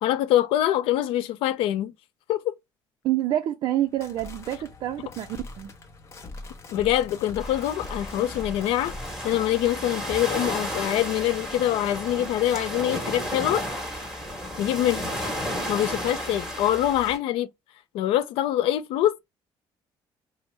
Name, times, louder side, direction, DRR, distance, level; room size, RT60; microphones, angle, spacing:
voice 1, 0.0-1.9 2.3-2.5 6.7-8.9 9.2-13.6 14.6-15.1 15.7-17.5 17.9-19.2, left 13 dB, 80° left, 0.4 m, -24 dB
voice 2, 3.0-5.7, right 13 dB, 55° right, 0.4 m, -27 dB
sound 1, 3.8-9.4, left 2 dB, 30° left, 0.6 m, -42 dB
sound 2, 7.4-17.2, equal, 5° right, 1.3 m, -33 dB
4.4 x 2.0 x 3.2 m
cardioid pair, 165°, 9 cm